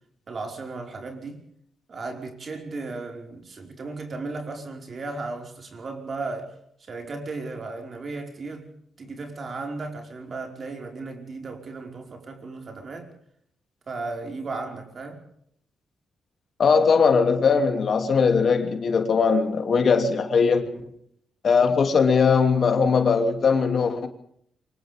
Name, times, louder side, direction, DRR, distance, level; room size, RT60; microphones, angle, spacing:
voice 1, 0.3-1.4 1.9-6.6 6.9-13.1 13.9-15.2, right 3 dB, 40° right, 5.3 m, -35 dB
voice 2, 16.6-20.6 21.4-24.1, left 5 dB, 50° left, 2.8 m, -20 dB
28.0 x 25.5 x 3.7 m
cardioid pair, 120°, 0 cm